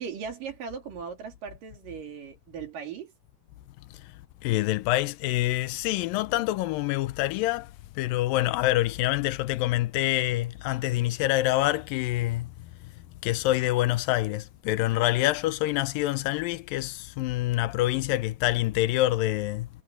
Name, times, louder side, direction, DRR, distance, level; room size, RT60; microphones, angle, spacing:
voice 1, 0.0-3.1, right 6 dB, 75° right, 4.7 m, -38 dB
voice 2, 4.4-7.7 8.0-12.5 12.8-12.9 13.2-19.7, left 16 dB, 85° left, 2.4 m, -26 dB
omnidirectional pair, 3.9 m